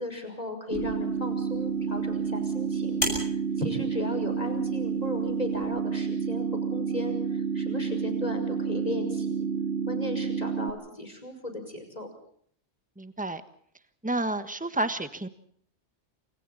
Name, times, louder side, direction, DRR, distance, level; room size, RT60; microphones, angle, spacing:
voice 1, 0.0-9.5 9.9-12.1, left 1 dB, 35° left, 6 dB, 5.9 m, -36 dB
sound 1, 0.7-5.7, equal, 60° left, 7.4 m, -39 dB
sound 2, 0.7-10.7, right 6 dB, 85° right, 3.0 m, -29 dB
voice 2, 13.0-13.4 14.0-15.3, right 2 dB, 5° right, 10 dB, 1.4 m, -30 dB
28.5 x 27.0 x 4.2 m, 0.63 s
omnidirectional pair, 1.2 m